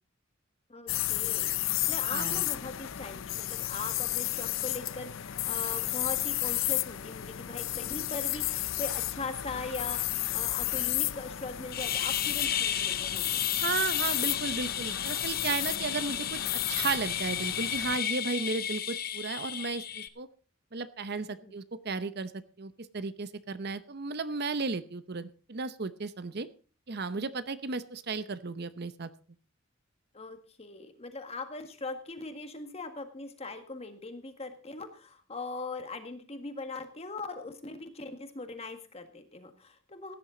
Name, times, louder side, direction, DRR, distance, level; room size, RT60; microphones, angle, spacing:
voice 1, 0.7-13.4 21.3-21.6 30.1-40.1, left 3 dB, 30° left, 7 dB, 1.7 m, -40 dB
sound 1, 0.9-18.0, left 15 dB, 75° left, 0.6 m, -33 dB
voice 2, 2.1-2.4 13.6-20.3 20.7-22.3 22.6-26.5 26.9-29.1, right 4 dB, 55° right, 13 dB, 0.8 m, -34 dB
sound 2, 11.7-20.1, left 10 dB, 45° left, 1.0 m, -33 dB
16.5 x 10.5 x 3.9 m, 0.36 s
head